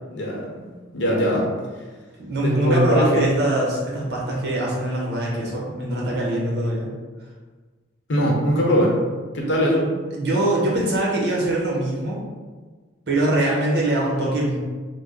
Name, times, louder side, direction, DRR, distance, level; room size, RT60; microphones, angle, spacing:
voice 1, 0.1-1.5 2.4-3.3 8.1-9.0 9.3-9.9, equal, 70° left, -3 dB, 0.9 m, -21 dB
voice 2, 2.2-6.9 10.1-12.3 13.1-14.6, right 1 dB, 60° right, -3 dB, 0.9 m, -23 dB
3.4 x 2.1 x 3.9 m, 1.4 s
head